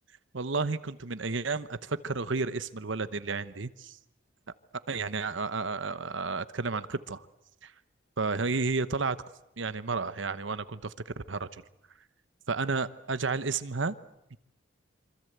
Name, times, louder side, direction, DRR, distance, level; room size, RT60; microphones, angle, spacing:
voice 1, 0.3-4.0 4.9-7.3 7.6-7.7 8.2-9.2 9.6-11.5 12.5-13.9 14.3-14.4, right 4 dB, 75° right, 14 dB, 1.0 m, -32 dB
26.0 x 25.5 x 8.0 m, 0.84 s
head